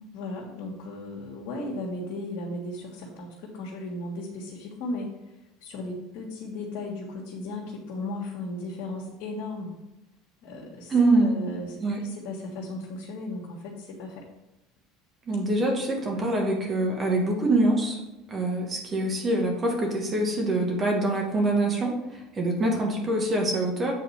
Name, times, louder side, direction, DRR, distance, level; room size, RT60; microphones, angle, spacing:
voice 1, 0.1-5.1 5.6-9.7 10.4-14.3 16.0-16.2, left 2 dB, 65° left, -3 dB, 1.8 m, -36 dB
voice 2, 10.9-11.4 11.8-12.0 15.3-18.0 18.3-23.9, right 2 dB, 30° right, 0 dB, 2.1 m, -25 dB
8.2 x 4.1 x 5.7 m, 0.96 s
supercardioid pair, 110°, 0 cm